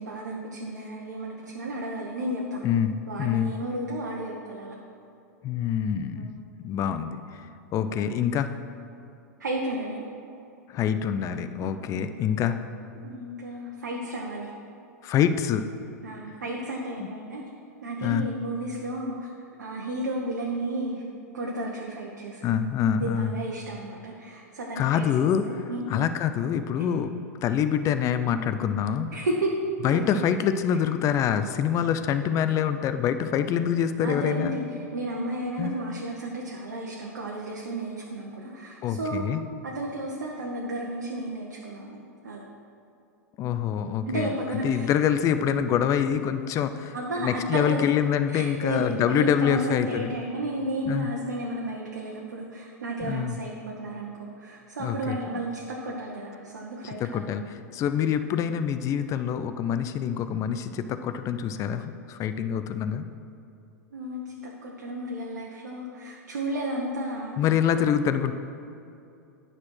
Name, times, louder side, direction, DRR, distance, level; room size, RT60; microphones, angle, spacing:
voice 1, 0.0-2.6 3.1-4.7 6.1-6.3 9.4-10.1 11.6-11.9 13.0-14.5 16.0-17.4 17.8-19.3 19.6-21.0 21.3-22.5 23.0-25.1 25.5-25.9 29.1-29.5 29.9-30.0 34.0-34.6 34.9-39.2 39.6-42.4 44.1-44.9 46.9-47.8 48.3-57.2 63.9-64.3 64.6-67.3, right 1 dB, 80° right, -2 dB, 1.0 m, -33 dB
voice 2, 2.6-2.9 3.2-3.5 5.4-6.3 6.6-7.4 7.7-8.5 10.7-12.6 15.0-15.7 17.0-17.1 18.0-18.3 22.4-23.3 24.8-25.6 25.9-29.1 29.8-34.6 35.6-35.7 38.8-39.4 43.4-44.3 44.6-50.1 50.9-51.1 53.0-53.4 54.8-55.2 56.8-63.0 67.4-68.3, left 8 dB, 35° left, 10 dB, 0.5 m, -26 dB
9.5 x 4.3 x 6.3 m, 2.7 s
hypercardioid pair, 100°, 9 cm